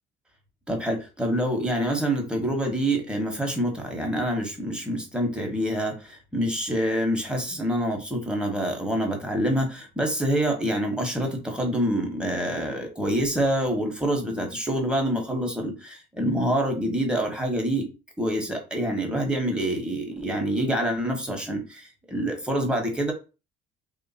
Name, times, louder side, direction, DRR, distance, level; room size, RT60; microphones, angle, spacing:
voice 1, 0.7-17.9 18.2-23.1, right 1 dB, 5° right, 1 dB, 1.3 m, -26 dB
3.3 x 2.8 x 4.2 m, 0.31 s
cardioid pair, 120°, 19 cm